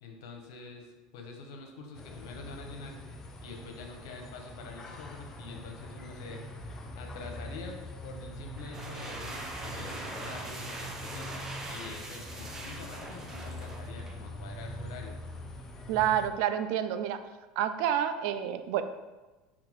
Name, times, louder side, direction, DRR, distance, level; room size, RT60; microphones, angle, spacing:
voice 1, 0.0-3.0 3.4-6.4 6.9-11.4 11.7-15.2, left 3 dB, 80° left, 3 dB, 0.7 m, -46 dB
sound 1, 1.9-16.3, left 1 dB, 20° left, 0.5 m, -43 dB
sound 2, 8.5-14.3, right 2 dB, 20° right, 0.6 m, -42 dB
voice 2, 15.9-17.2 17.6-18.8, right 10 dB, 70° right, 10 dB, 0.3 m, -28 dB
4.2 x 2.5 x 4.0 m, 1.2 s
supercardioid pair, 120°, 2 cm